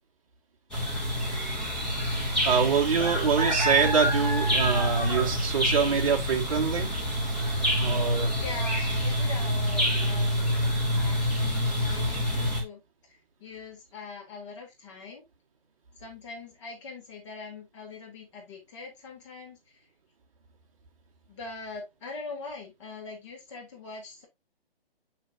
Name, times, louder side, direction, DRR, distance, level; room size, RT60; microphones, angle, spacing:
sound 1, 0.7-12.6, equal, ahead, 0.9 m, -27 dB
voice 1, 2.4-6.9 7.8-8.3, right 6 dB, 35° right, 2.3 m, -25 dB
voice 2, 8.4-12.8 13.1-15.2 16.0-19.6 21.3-24.3, left 3 dB, 30° left, 3.5 m, -42 dB
7.4 x 6.5 x 2.8 m
hypercardioid pair, 170°, 30 cm